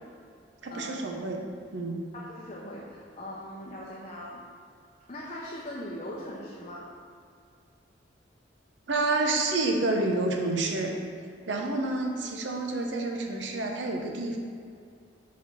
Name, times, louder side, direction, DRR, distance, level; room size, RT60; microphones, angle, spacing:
voice 1, 0.6-1.4 1.7-2.1 8.9-11.0 11.5-14.4, right 2 dB, 70° right, 2 dB, 0.7 m, -29 dB
voice 2, 2.1-4.5 5.1-7.0, left 1 dB, 35° left, -4 dB, 0.6 m, -40 dB
5.0 x 4.2 x 5.4 m, 2.2 s
head